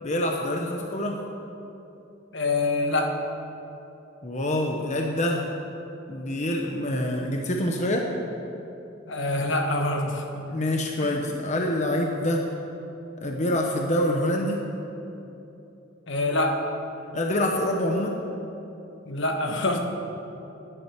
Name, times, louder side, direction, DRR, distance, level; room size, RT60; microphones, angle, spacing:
voice 1, 0.0-1.2 4.2-5.5 6.1-8.1 10.5-12.4 13.2-14.6 17.1-18.1, left 1 dB, 35° left, 1 dB, 1.0 m, -26 dB
voice 2, 2.3-3.2 9.1-10.5 11.0-11.1 16.1-16.6 19.1-19.9, left 2 dB, 65° left, 4 dB, 1.4 m, -25 dB
10.0 x 8.9 x 9.6 m, 3.0 s
head